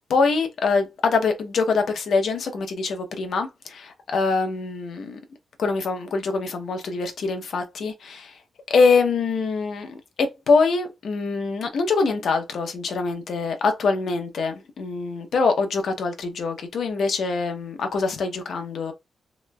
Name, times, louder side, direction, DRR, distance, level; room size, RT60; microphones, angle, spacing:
voice 1, 0.1-5.2 5.6-8.4 8.7-18.9, left 4 dB, 70° left, 0.7 m, -24 dB
3.0 x 3.0 x 2.2 m
cardioid pair, 105°, 0 cm